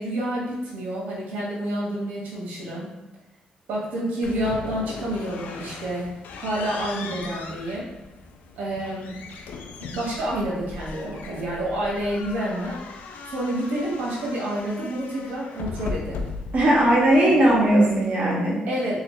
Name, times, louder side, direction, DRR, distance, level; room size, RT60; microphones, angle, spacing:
voice 1, 0.0-2.9 3.7-6.1 6.4-7.9 8.5-9.1 9.8-12.8 13.2-16.3 18.7-19.0, right 1 dB, 75° right, -5 dB, 1.3 m, -28 dB
sound 1, 4.2-18.3, left 4 dB, 80° left, 0.4 m, -38 dB
voice 2, 16.5-18.6, right 1 dB, 50° right, -5 dB, 1.5 m, -18 dB
3.6 x 3.2 x 3.1 m, 0.98 s
cardioid pair, 80°, 3 cm